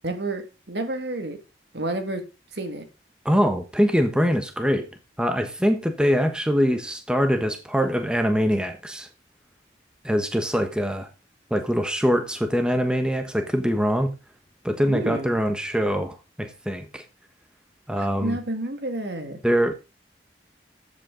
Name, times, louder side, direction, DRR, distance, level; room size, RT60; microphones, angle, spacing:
voice 1, 0.0-1.4 1.7-2.2 2.5-2.8 14.9-15.4 18.0-19.4, right 1 dB, 70° right, 2.0 m, -30 dB
voice 2, 3.2-4.9 5.2-9.1 10.0-11.1 11.5-14.1 14.6-17.0 17.9-18.4 19.4-19.7, equal, 5° right, 1.1 m, -23 dB
13.5 x 8.2 x 3.8 m
head